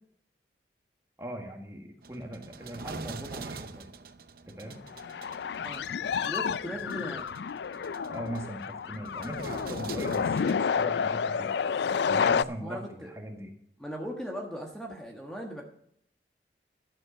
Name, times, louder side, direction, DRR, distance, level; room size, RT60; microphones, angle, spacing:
voice 1, 1.2-3.9 4.5-4.8 8.1-11.5 12.1-13.5, right 1 dB, 15° right, 2 dB, 1.7 m, -40 dB
sound 1, 2.0-10.6, right 4 dB, 55° right, 0.7 m, -45 dB
sound 2, 4.9-12.4, left 6 dB, 75° left, 0.4 m, -30 dB
voice 2, 6.2-7.3 12.6-13.1 13.8-15.6, equal, 5° left, 0 dB, 1.4 m, -38 dB
12.0 x 7.7 x 6.5 m, 0.68 s
head